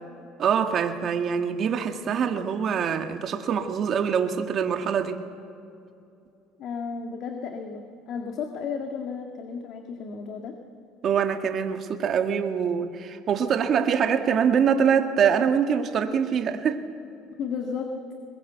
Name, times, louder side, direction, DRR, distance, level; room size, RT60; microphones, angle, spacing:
voice 1, 0.4-5.2 11.0-16.8, right 7 dB, 45° right, 6 dB, 1.6 m, -24 dB
voice 2, 6.6-10.6 17.4-18.0, left 5 dB, 60° left, 4 dB, 1.8 m, -33 dB
21.5 x 21.5 x 8.1 m, 2.6 s
supercardioid pair, 100°, 0 cm